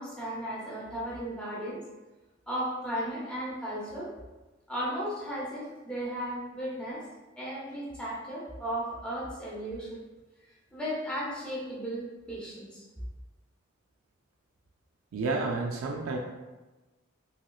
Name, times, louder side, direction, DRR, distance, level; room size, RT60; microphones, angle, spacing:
voice 1, 0.0-1.8 2.5-4.1 4.7-7.0 7.4-10.0 10.7-12.8, equal, 5° left, -7 dB, 0.7 m, -35 dB
voice 2, 15.1-16.2, right 3 dB, 80° right, -1 dB, 0.4 m, -30 dB
3.0 x 3.0 x 2.3 m, 1.2 s
head